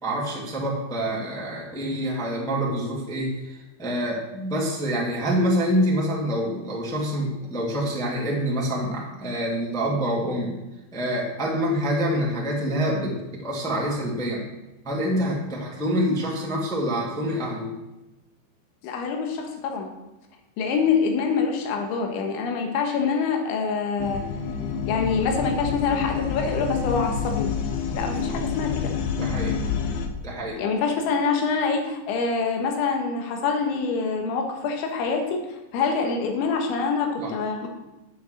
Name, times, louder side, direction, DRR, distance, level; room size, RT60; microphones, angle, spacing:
voice 1, 0.0-10.5 10.9-13.1 13.4-14.4 14.8-17.7 28.3-28.4 29.2-29.6 30.2-30.6 37.2-37.3, equal, ahead, -4 dB, 1.1 m, -26 dB
voice 2, 18.8-19.9 20.6-24.2 24.9-27.5 27.9-28.9 30.6-37.7, left 5 dB, 90° left, 3 dB, 3.9 m, -25 dB
sound 1, 24.0-30.1, left 6 dB, 70° left, 2.7 m, -28 dB
8.7 x 8.3 x 7.7 m, 1.0 s
omnidirectional pair, 5.2 m